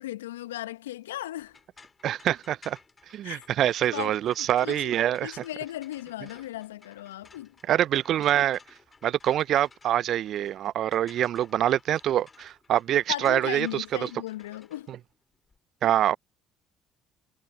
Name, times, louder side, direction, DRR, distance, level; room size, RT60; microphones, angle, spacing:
voice 1, 0.0-1.6 3.2-3.5 3.9-4.9 5.2-7.5 13.1-14.9, left 14 dB, 80° left, 1.3 m, -37 dB
sound 1, 1.4-15.6, left 4 dB, 30° left, 3.3 m, -56 dB
voice 2, 2.0-2.8 3.1-5.3 7.7-8.6 9.0-14.1 14.9-15.0 15.8-16.2, right 11 dB, 55° right, 0.5 m, -25 dB
figure-of-eight pair, 55°, 0 cm